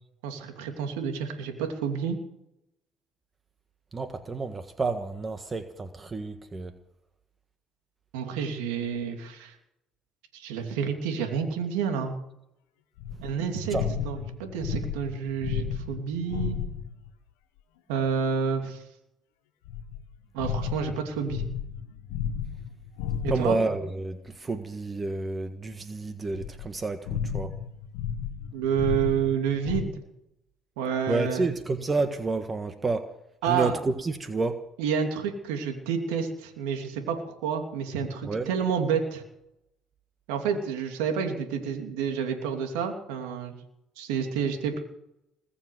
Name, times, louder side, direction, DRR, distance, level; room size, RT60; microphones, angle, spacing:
voice 1, 0.2-2.2 8.1-9.5 10.3-12.1 13.2-13.8 14.0-16.6 17.9-18.8 20.3-21.4 23.2-23.6 28.5-29.9 30.8-31.5 33.4-33.7 34.8-39.2 40.3-43.5 44.0-44.8, right 7 dB, 85° right, 4 dB, 2.9 m, -29 dB
voice 2, 3.9-6.7 13.7-13.9 23.3-27.5 31.1-33.1 33.5-34.6 38.2-38.5, right 3 dB, 30° right, 8 dB, 1.6 m, -29 dB
sound 1, 13.0-17.1 19.7-23.8 26.3-29.8, left 8 dB, 85° left, 1.6 m, -33 dB
21.0 x 7.1 x 9.4 m, 0.81 s
supercardioid pair, 65°, 0 cm